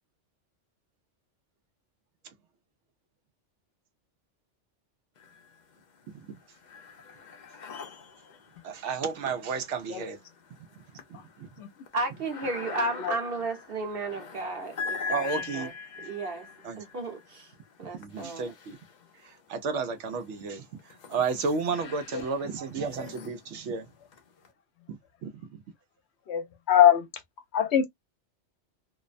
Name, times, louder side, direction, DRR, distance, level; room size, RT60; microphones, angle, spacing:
sound 1, 5.2-5.8 6.2-19.4 20.0-24.5, left 5 dB, 50° left, 0.6 m, -42 dB
voice 1, 6.1-6.4 8.6-10.2 10.7-10.8 11.1-11.5 12.1-12.5 15.1-15.7 16.6-16.8 17.9-18.8 19.1-23.9 24.9-25.6, right 5 dB, 80° right, 0.9 m, -33 dB
voice 2, 11.9-15.2 15.5-15.7 16.0-16.5 16.8-17.5 17.8-18.5, right 2 dB, 55° right, 1.0 m, -33 dB
voice 3, 26.3-27.1 27.5-27.8, left 10 dB, 70° left, 0.9 m, -23 dB
2.6 x 2.1 x 2.4 m
omnidirectional pair, 1.2 m